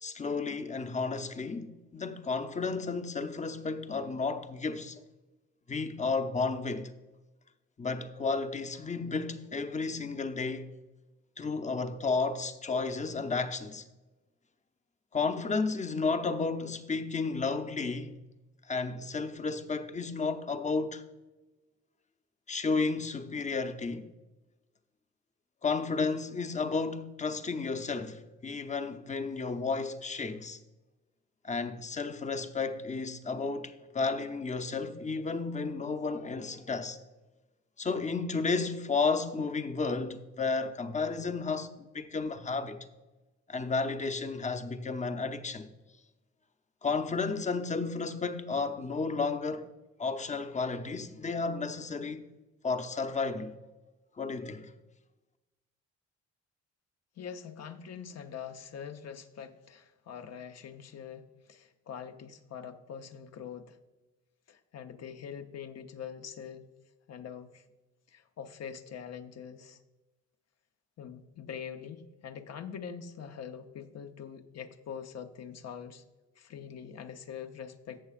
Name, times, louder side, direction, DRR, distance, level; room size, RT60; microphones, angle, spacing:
voice 1, 0.0-5.0 5.7-6.9 7.8-10.7 11.4-13.8 15.1-18.2 18.7-21.0 22.5-24.1 25.6-30.6 31.4-37.0 37.8-42.8 43.5-45.7 46.8-49.7 50.0-52.2 52.6-53.5 54.2-54.7, left 4 dB, 25° left, 0.7 m, -32 dB
voice 2, 57.2-61.2 61.5-63.7 64.5-66.7 67.1-67.6 68.1-69.8 71.0-76.0 76.4-78.0, left 7 dB, 60° left, 0.8 m, -44 dB
15.0 x 6.8 x 2.5 m
cardioid pair, 90°, 30 cm